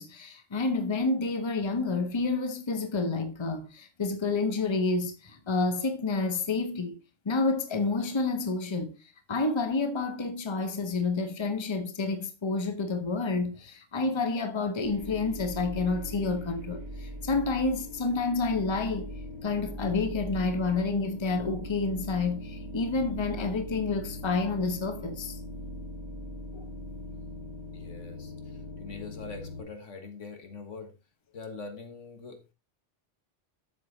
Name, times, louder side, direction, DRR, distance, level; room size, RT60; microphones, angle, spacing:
voice 1, 0.0-7.0 7.2-9.0 9.3-19.1 19.4-25.4 26.5-26.6, left 3 dB, 25° left, 1.0 m, -29 dB
sound 1, 14.8-29.6, left 1 dB, 10° right, 2.8 m, -40 dB
voice 2, 27.7-30.9 31.3-32.4, left 4 dB, 80° left, 1.9 m, -43 dB
8.0 x 6.7 x 3.9 m
omnidirectional pair, 1.2 m